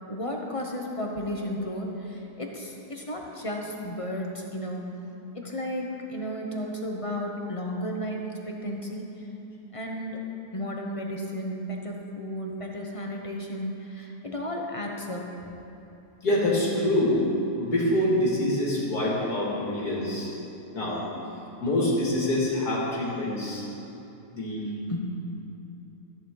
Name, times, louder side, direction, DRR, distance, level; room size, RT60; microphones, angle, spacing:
voice 1, 0.1-4.9 5.3-9.0 9.7-10.2 10.5-15.2 24.9-25.0, equal, 25° left, 0 dB, 0.9 m, -33 dB
voice 2, 16.2-17.2 17.5-20.3 20.7-21.0 21.6-23.6 24.3-24.7, left 1 dB, 80° left, -6 dB, 3.1 m, -25 dB
14.0 x 10.0 x 3.9 m, 3.0 s
omnidirectional pair, 1.6 m